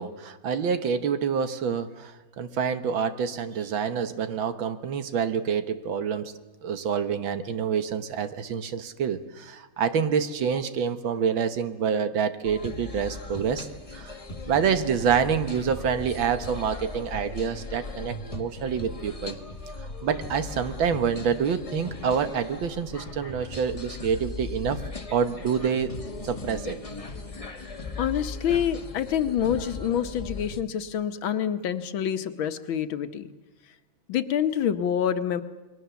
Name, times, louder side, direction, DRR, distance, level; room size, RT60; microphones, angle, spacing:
voice 1, 0.0-6.3 6.6-14.2 14.5-19.4 20.0-24.8 25.1-25.9 26.2-26.8, right 7 dB, 70° right, 10 dB, 1.9 m, -27 dB
sound 1, 12.4-30.6, left 3 dB, 20° left, 1.1 m, -38 dB
voice 2, 27.6-33.3 34.1-35.4, left 9 dB, 70° left, 10 dB, 1.8 m, -27 dB
28.5 x 22.0 x 7.0 m, 1.1 s
omnidirectional pair, 2.3 m